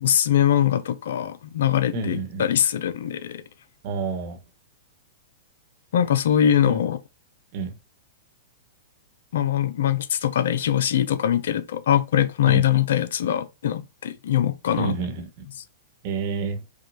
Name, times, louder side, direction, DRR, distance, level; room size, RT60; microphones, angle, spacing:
voice 1, 0.0-3.4 5.9-7.0 9.3-15.0, left 10 dB, 70° left, 0.5 m, -22 dB
voice 2, 1.9-2.5 3.8-4.4 6.6-6.8 7.5-7.7 12.4-12.7 14.8-15.3 16.0-16.6, right 5 dB, 50° right, 1.2 m, -28 dB
4.9 x 2.3 x 2.7 m
hypercardioid pair, 120°, 0 cm